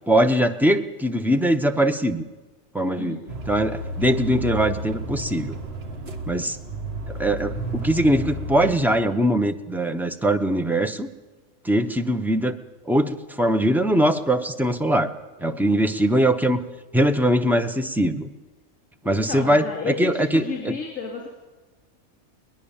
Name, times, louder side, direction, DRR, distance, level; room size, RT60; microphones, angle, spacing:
voice 1, 0.1-2.2 2.7-3.2 3.5-5.6 6.3-6.6 7.1-11.1 11.6-12.6 12.8-15.1 15.4-16.6 16.9-18.3 19.0-20.8, right 1 dB, ahead, 7 dB, 0.6 m, -21 dB
voice 2, 3.0-3.3 19.0-21.3, left 5 dB, 65° left, -1 dB, 3.3 m, -32 dB
sound 1, 3.3-8.7, right 1 dB, 50° right, 1.8 m, -32 dB
22.5 x 19.5 x 7.3 m, 1.2 s
omnidirectional pair, 1.4 m